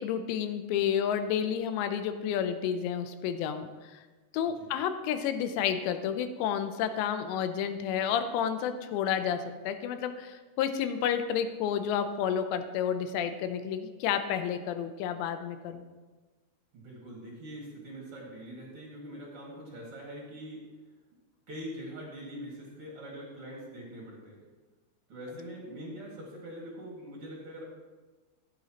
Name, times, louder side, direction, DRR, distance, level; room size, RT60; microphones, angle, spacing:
voice 1, 0.0-4.0 4.3-15.8, left 8 dB, 85° left, 9 dB, 2.9 m, -30 dB
voice 2, 16.7-20.6 21.5-24.4 25.1-27.6, equal, 45° right, -3 dB, 2.0 m, -43 dB
14.0 x 9.1 x 2.9 m, 1.3 s
omnidirectional pair, 5.0 m